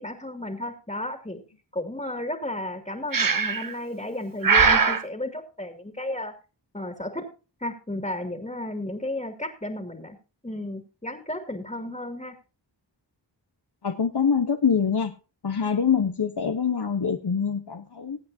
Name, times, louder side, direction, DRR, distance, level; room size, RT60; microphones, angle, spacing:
voice 1, 0.0-1.4 1.7-6.3 6.7-7.2 7.6-10.2 10.4-12.3, left 1 dB, 15° left, 5 dB, 2.5 m, -33 dB
Breathing, 3.1-3.7 4.4-5.0, right 5 dB, 50° right, 1.0 m, -20 dB
voice 2, 13.8-15.1 15.4-18.2, left 6 dB, 60° left, 6 dB, 1.1 m, -24 dB
20.5 x 8.6 x 2.7 m, 0.32 s
wide cardioid pair, 45°, 44 cm